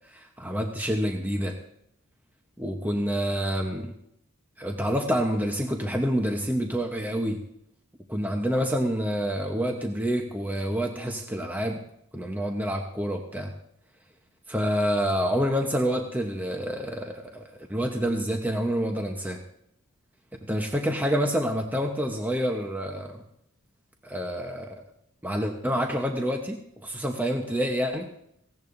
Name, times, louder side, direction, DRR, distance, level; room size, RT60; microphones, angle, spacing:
voice 1, 0.1-1.6 2.6-3.9 4.6-7.4 8.1-11.8 12.1-13.5 14.5-19.4 20.4-23.2 24.0-24.8 25.2-28.1, equal, 10° right, 2 dB, 0.9 m, -28 dB
18.0 x 16.0 x 2.7 m, 0.74 s
head